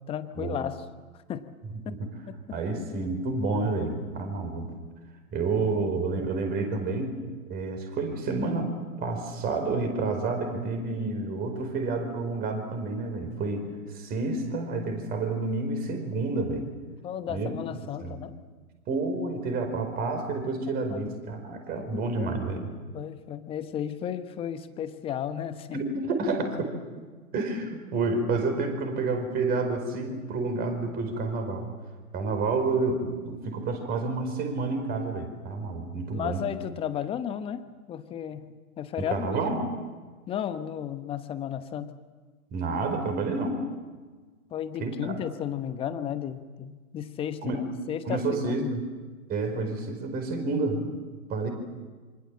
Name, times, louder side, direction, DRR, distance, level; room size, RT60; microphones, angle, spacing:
voice 1, 0.1-0.8 1.3-1.5 2.3-2.4 17.0-18.4 20.7-21.0 21.8-22.6 22.9-25.8 36.1-39.4 40.3-42.0 44.5-48.8, left 9 dB, 15° left, 11 dB, 1.0 m, -34 dB
voice 2, 2.5-4.7 5.3-7.2 7.5-8.7 9.0-16.7 17.3-17.6 18.0-18.2 18.9-22.7 25.7-26.7 27.3-31.7 32.1-36.4 39.0-39.6 42.5-43.6 44.8-45.1 47.4-47.6 48.0-48.8 49.3-51.0 51.3-51.5, right 3 dB, 20° right, 6 dB, 4.8 m, -29 dB
27.0 x 25.5 x 7.7 m, 1.4 s
figure-of-eight pair, 125°, 43 cm